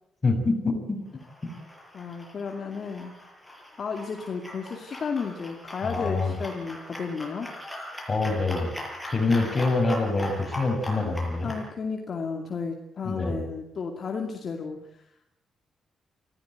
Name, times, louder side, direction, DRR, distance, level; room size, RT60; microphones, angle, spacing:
voice 1, 0.2-1.0 5.8-6.3 8.1-8.7 9.1-11.5 13.0-13.4, left 3 dB, 25° left, 2 dB, 6.6 m, -25 dB
sound 1, 1.2-11.6, left 1 dB, 5° left, 7.0 m, -40 dB
voice 2, 1.9-3.2 3.8-7.5 11.4-15.0, left 5 dB, 45° left, 2 dB, 2.5 m, -33 dB
24.0 x 16.0 x 9.3 m, 0.81 s
cardioid pair, 125°, 0 cm